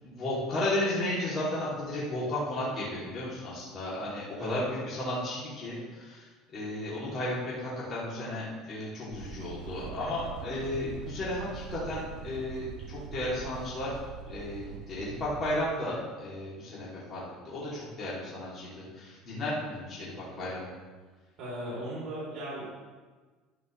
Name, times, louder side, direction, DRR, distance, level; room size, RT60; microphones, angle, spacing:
voice 1, 0.0-14.0 14.3-20.6, left 1 dB, 35° left, -8 dB, 2.9 m, -34 dB
sound 1, 9.1-15.6, right 7 dB, 70° right, 0.5 m, -43 dB
voice 2, 21.4-22.7, right 1 dB, 45° right, -8 dB, 3.4 m, -37 dB
12.0 x 9.1 x 3.2 m, 1.4 s
cardioid pair, 135°, 0 cm